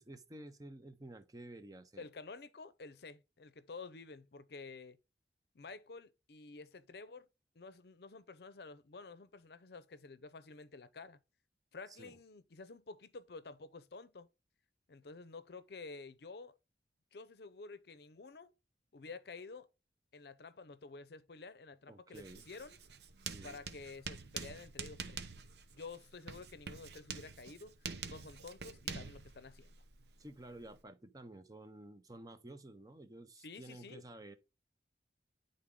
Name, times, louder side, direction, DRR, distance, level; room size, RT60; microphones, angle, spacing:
voice 1, 0.0-2.0 11.9-12.2 21.9-22.4 23.2-23.6 30.2-34.4, right 1 dB, 20° right, 0.6 m, -52 dB
voice 2, 2.0-5.0 5.5-7.3 7.6-11.2 11.7-14.3 14.9-16.6 17.1-18.5 18.9-19.7 20.1-22.8 23.4-25.2 25.7-29.8 33.4-34.0, left 4 dB, 65° left, 0.6 m, -51 dB
Writing, 22.1-30.8, right 6 dB, 75° right, 0.8 m, -47 dB
9.8 x 3.9 x 3.7 m
head